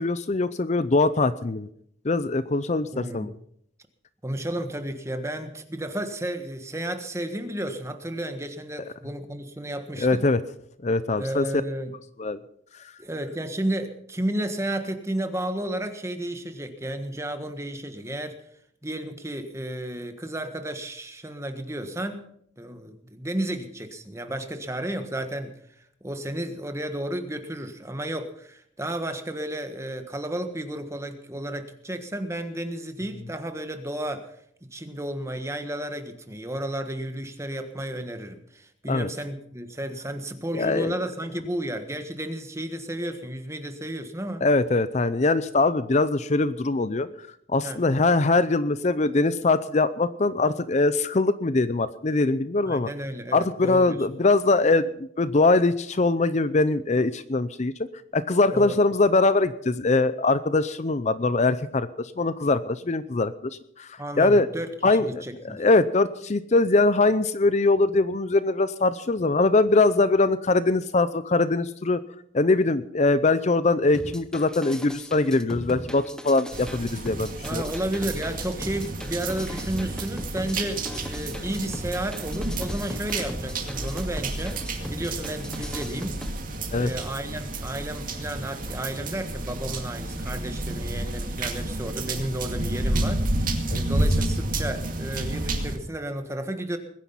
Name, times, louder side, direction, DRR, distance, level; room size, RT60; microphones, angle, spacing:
voice 1, 0.0-1.7 2.0-3.3 10.0-10.4 10.8-11.4 12.2-12.4 38.9-39.1 40.5-41.0 44.4-47.1 47.5-52.9 53.3-57.7 58.1-63.3 63.8-63.9 64.2-64.5 64.8-72.0 72.3-77.6 86.7-86.9, left 3 dB, 35° left, 14 dB, 0.5 m, -22 dB
voice 2, 2.9-3.3 4.2-10.2 11.2-11.9 13.0-18.4 18.8-22.3 22.6-34.3 34.7-44.5 47.6-47.8 52.7-54.1 58.5-58.8 64.0-65.6 77.4-86.1 86.7-96.8, right 1 dB, 15° right, 7 dB, 1.4 m, -32 dB
sound 1, 73.9-86.3, equal, 5° left, 0.8 m, -39 dB
sound 2, 76.5-95.8, right 2 dB, 45° right, 2.2 m, -30 dB
21.5 x 10.0 x 5.6 m, 0.68 s
head